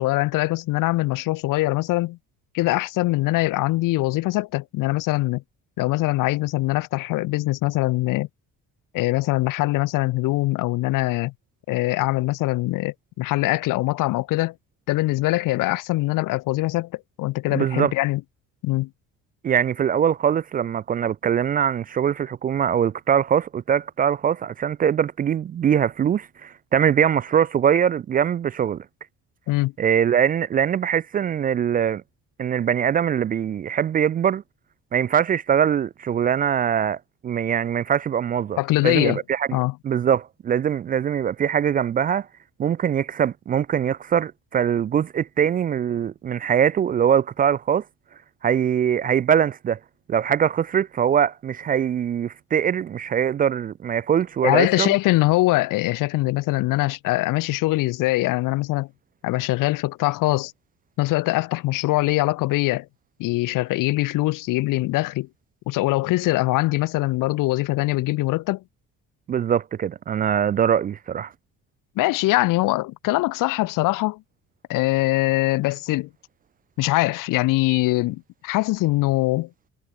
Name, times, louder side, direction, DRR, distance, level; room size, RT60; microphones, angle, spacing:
voice 1, 0.0-2.2 2.5-5.4 5.8-8.3 8.9-11.3 11.7-14.5 14.9-18.2 18.6-18.9 29.5-29.7 38.6-39.2 39.5-39.7 54.4-58.9 59.2-60.5 61.0-62.9 63.2-65.3 65.7-68.6 72.0-74.2 74.7-76.1 76.8-79.5, left 19 dB, 80° left, 1.2 m, -22 dB
voice 2, 17.5-17.9 19.4-28.8 29.8-32.0 32.4-34.4 34.9-37.0 37.2-38.6 38.8-39.6 39.8-42.3 42.6-47.8 48.4-49.8 50.1-54.9 69.3-71.3, right 8 dB, 25° right, 0.4 m, -22 dB
cardioid pair, 180°, 32 cm